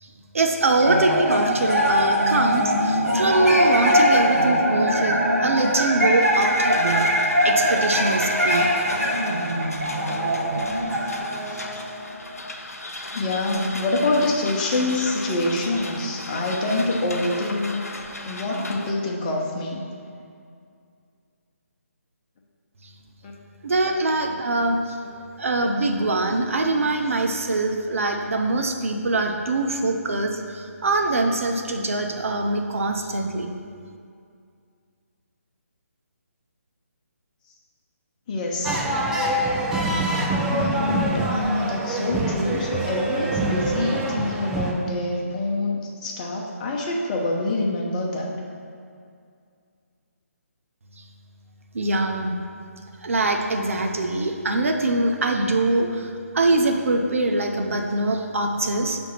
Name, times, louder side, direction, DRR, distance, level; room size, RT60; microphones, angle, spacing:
voice 1, 0.0-7.1 7.4-8.8 23.6-25.0 25.4-33.5 51.7-52.4 53.0-59.0, right 2 dB, 60° right, 4 dB, 0.6 m, -23 dB
sound 1, 0.8-12.4, equal, 80° right, 1.3 m, -22 dB
sound 2, 6.2-18.9, left 2 dB, 80° left, 0.6 m, -36 dB
voice 2, 13.1-17.8 18.2-19.8 23.2-23.3 38.3-38.8 40.5-48.3, left 2 dB, 30° left, -2 dB, 0.8 m, -26 dB
sound 3, 38.6-44.7, right 1 dB, 5° right, 0.3 m, -25 dB
6.0 x 3.4 x 5.7 m, 2.3 s
figure-of-eight pair, 145°, 8 cm